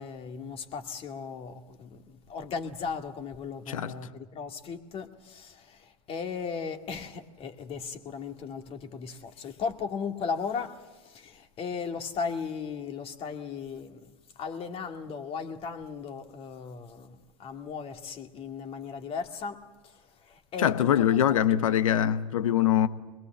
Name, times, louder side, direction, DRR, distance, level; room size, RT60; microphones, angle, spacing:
voice 1, 0.0-21.4, left 5 dB, 35° left, 2.1 m, -37 dB
voice 2, 3.7-4.0 20.6-22.9, left 10 dB, 75° left, 1.1 m, -23 dB
23.5 x 21.5 x 7.4 m
hypercardioid pair, 100°, 17 cm